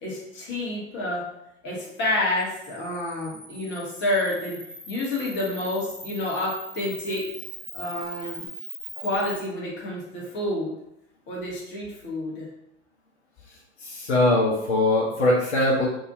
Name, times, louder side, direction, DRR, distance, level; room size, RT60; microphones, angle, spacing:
voice 1, 0.0-1.2 1.6-4.6 4.9-7.2 7.7-8.5 8.9-10.7 11.3-12.5, left 1 dB, 30° left, -4 dB, 1.2 m, -29 dB
Camera, 2.4-9.4, right 1 dB, 85° right, 0.9 m, -41 dB
voice 2, 13.8-15.9, left 1 dB, 70° left, -4 dB, 0.7 m, -21 dB
2.7 x 2.6 x 2.6 m, 0.82 s
figure-of-eight pair, 80°, 35 cm